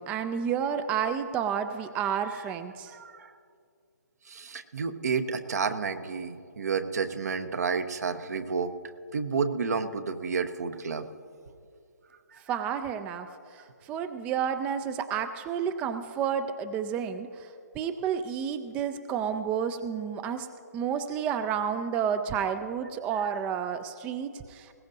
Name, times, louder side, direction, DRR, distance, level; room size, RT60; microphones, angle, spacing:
voice 1, 0.0-3.0 12.5-20.5 20.7-24.7, right 8 dB, 15° right, 10 dB, 0.3 m, -31 dB
voice 2, 2.9-3.3 4.3-8.7 9.1-11.1 12.3-12.4, right 5 dB, 65° right, 9 dB, 0.9 m, -30 dB
21.0 x 17.0 x 2.7 m, 2.3 s
figure-of-eight pair, 140°, 9 cm